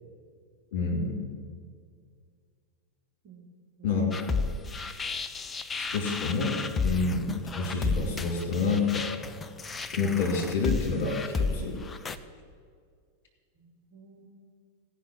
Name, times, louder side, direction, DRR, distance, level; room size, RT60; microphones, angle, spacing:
voice 1, 0.7-1.3 3.8-4.3 5.8-6.6 6.8-9.1 9.9-11.8, left 4 dB, 55° left, 0 dB, 3.2 m, -28 dB
voice 2, 3.8-4.6 13.5-14.3, right 4 dB, 45° right, -2 dB, 2.7 m, -51 dB
sound 1, 4.1-12.2, left 4 dB, 20° left, 0.5 m, -33 dB
16.5 x 5.7 x 6.1 m, 2.1 s
figure-of-eight pair, 90°, 0 cm